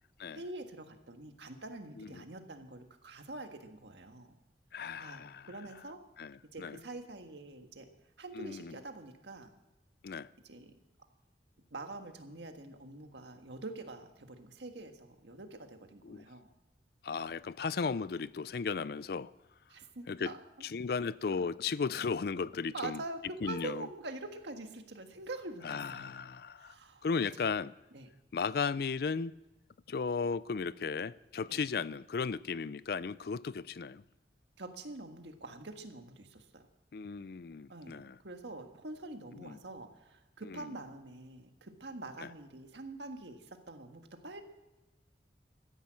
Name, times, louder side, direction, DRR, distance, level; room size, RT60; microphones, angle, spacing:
voice 1, 0.3-4.3 5.0-6.0 6.5-7.9 8.2-9.5 10.4-10.7 11.7-16.5 19.7-20.4 22.7-23.2 23.4-26.1 26.6-27.1 27.4-27.5 27.9-28.1 31.5-31.6 34.6-36.7 37.7-44.4, right 2 dB, 80° right, 1.6 m, -45 dB
voice 2, 4.7-5.5 6.2-6.8 8.3-8.7 10.0-10.3 16.0-16.2 17.0-19.3 20.1-20.3 20.6-23.0 23.4-23.9 25.6-26.8 27.0-27.7 28.3-29.3 29.9-34.0 36.9-38.2 39.3-39.6 40.5-40.7 42.2-42.3, left 5 dB, 60° left, 0.4 m, -35 dB
14.0 x 10.5 x 7.6 m
head